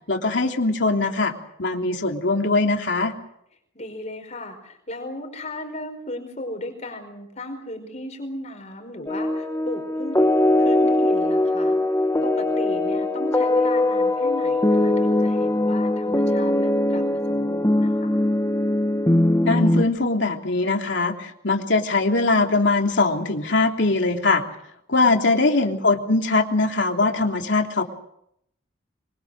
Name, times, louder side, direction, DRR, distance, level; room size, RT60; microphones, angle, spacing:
voice 1, 0.1-1.3 1.6-3.1 19.4-24.4 24.9-27.8, left 3 dB, 65° left, 3 dB, 3.2 m, -21 dB
voice 2, 3.7-10.2 10.6-11.8 12.2-18.2, left 1 dB, 35° left, 4 dB, 5.0 m, -36 dB
sound 1, 9.1-19.8, left 1 dB, 15° left, 1.6 m, -21 dB
25.0 x 25.0 x 6.4 m, 0.74 s
head